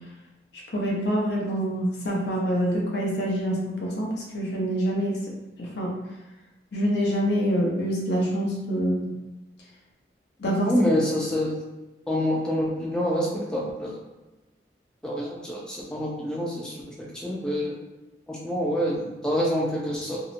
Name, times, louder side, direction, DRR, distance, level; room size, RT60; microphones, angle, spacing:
voice 1, 0.7-5.3 5.6-5.9 6.7-9.1 10.4-10.7, equal, 75° left, -3 dB, 0.7 m, -26 dB
voice 2, 10.6-11.5 12.1-14.0 15.0-17.7 18.3-20.2, equal, 5° left, -4 dB, 0.3 m, -27 dB
2.7 x 2.0 x 2.5 m, 1.1 s
head